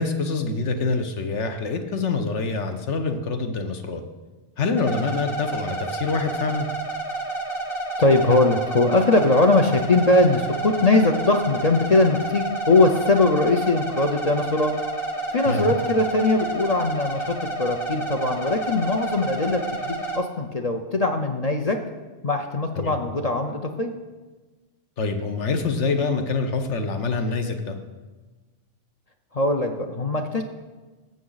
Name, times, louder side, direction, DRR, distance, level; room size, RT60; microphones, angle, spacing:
voice 1, 0.0-4.0 4.6-6.7 15.4-15.7 22.8-22.9 25.0-27.7, left 4 dB, 70° left, 6 dB, 1.2 m, -25 dB
sound 1, 4.8-20.2, right 2 dB, 25° left, 1.1 m, -30 dB
voice 2, 8.0-14.7 15.3-21.8 22.2-23.9 29.3-30.4, left 2 dB, 40° left, 4 dB, 0.6 m, -21 dB
14.5 x 7.3 x 4.0 m, 1.2 s
omnidirectional pair, 1.3 m